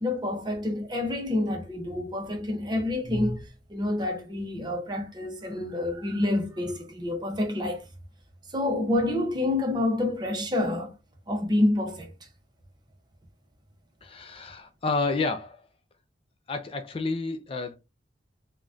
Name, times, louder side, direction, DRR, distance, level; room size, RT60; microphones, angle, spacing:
voice 1, 0.0-3.4 3.7-7.8 8.5-10.9 11.3-12.1, left 1 dB, 25° right, 0.7 m, -28 dB
voice 2, 14.0-15.6 16.5-17.8, left 3 dB, 30° left, 0.4 m, -30 dB
3.7 x 2.2 x 2.4 m
head